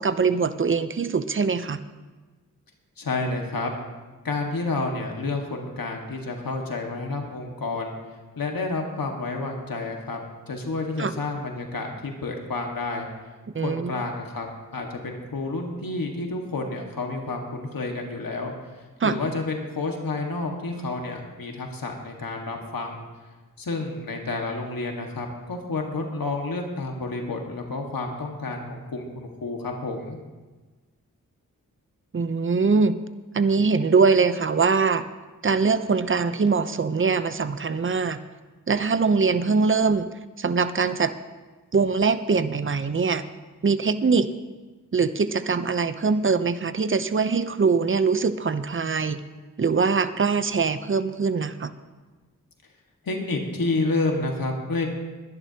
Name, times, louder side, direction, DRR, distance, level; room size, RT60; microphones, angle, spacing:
voice 1, 0.0-1.8 11.0-11.1 13.5-13.9 19.0-19.2 32.1-33.0 33.3-35.1 35.4-38.2 38.7-40.1 40.4-41.2 41.7-43.2 43.6-44.3 44.9-49.2 49.6-51.7, right 4 dB, 35° right, 12 dB, 0.6 m, -22 dB
voice 2, 3.0-3.7 4.2-8.0 8.4-10.2 10.5-13.1 13.5-18.5 19.0-23.1 23.6-30.2 53.0-54.9, left 3 dB, 80° left, 2 dB, 1.7 m, -30 dB
22.0 x 11.0 x 2.8 m, 1.3 s
wide cardioid pair, 70°, 34 cm